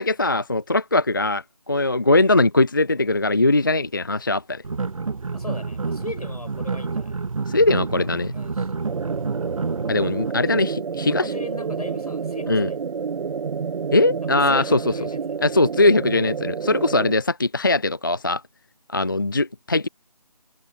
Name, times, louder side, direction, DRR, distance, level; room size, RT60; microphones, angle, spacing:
voice 1, 0.0-4.6 7.5-8.3 9.9-11.2 12.5-12.7 13.9-14.8 15.4-18.4 18.9-19.9, left 2 dB, 35° left, 0.4 m, -20 dB
sound 1, 4.6-10.3, right 4 dB, 60° right, 0.9 m, -29 dB
voice 2, 5.3-7.2 7.9-8.7 10.4-10.6 11.0-12.8 14.2-15.4, left 2 dB, 75° left, 7.4 m, -38 dB
sound 2, 8.8-17.1, right 6 dB, 85° right, 0.4 m, -29 dB
figure-of-eight pair, 165°, 20 cm